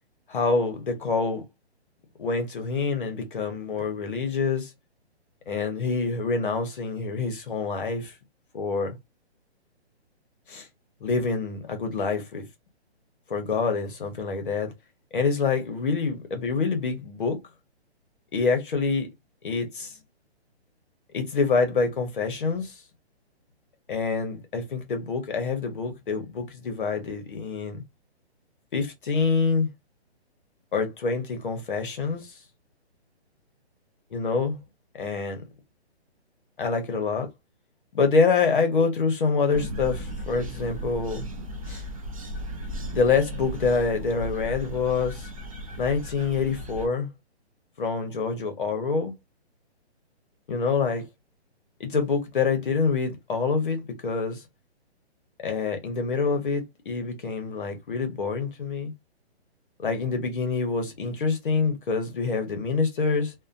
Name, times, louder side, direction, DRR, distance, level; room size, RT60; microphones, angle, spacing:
voice 1, 0.3-1.4 2.2-4.7 5.5-8.1 8.5-9.0 10.5-10.7 11.0-12.4 13.3-14.7 15.1-17.4 18.3-19.1 19.4-19.9 21.1-22.7 23.9-27.8 28.7-29.7 30.7-32.3 34.1-34.6 35.0-35.4 36.6-37.3 37.9-41.2 41.7-41.8 42.9-45.3 45.8-47.1 47.8-49.1 50.5-51.0 51.8-54.4 55.4-58.9 59.8-63.3, left 4 dB, 50° left, 0.9 m, -26 dB
sound 1, 39.5-46.9, equal, 30° right, 0.6 m, -36 dB
2.8 x 2.2 x 2.5 m
hypercardioid pair, 170°, 33 cm